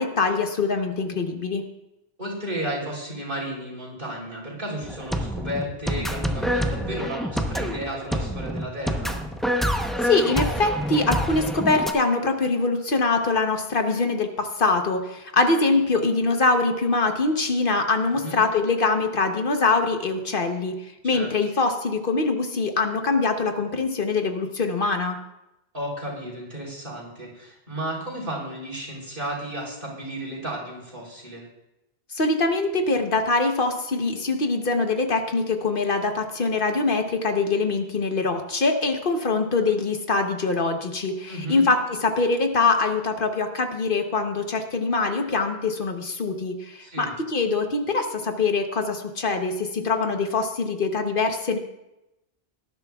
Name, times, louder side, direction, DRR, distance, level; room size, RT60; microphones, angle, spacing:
voice 1, 0.0-1.6 10.0-20.7 21.0-25.2 32.1-51.6, left 3 dB, 60° left, 5 dB, 1.1 m, -23 dB
voice 2, 2.2-9.2 18.2-18.4 21.0-21.3 25.7-31.5 41.3-41.7 46.8-47.1, right 1 dB, 55° right, -3 dB, 3.7 m, -33 dB
sound 1, 4.8-11.9, equal, ahead, 0.7 m, -27 dB
19.0 x 11.0 x 2.3 m, 0.92 s
omnidirectional pair, 1.0 m